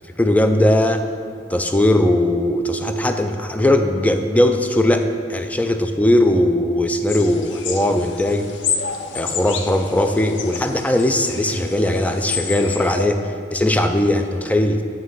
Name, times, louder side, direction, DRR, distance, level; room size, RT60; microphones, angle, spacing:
voice 1, 0.2-1.1 1.5-8.5 9.1-14.8, left 1 dB, 10° left, 6 dB, 0.3 m, -19 dB
sound 1, 7.1-13.1, left 6 dB, 70° left, 0.5 m, -29 dB
9.4 x 3.2 x 5.5 m, 2.3 s
head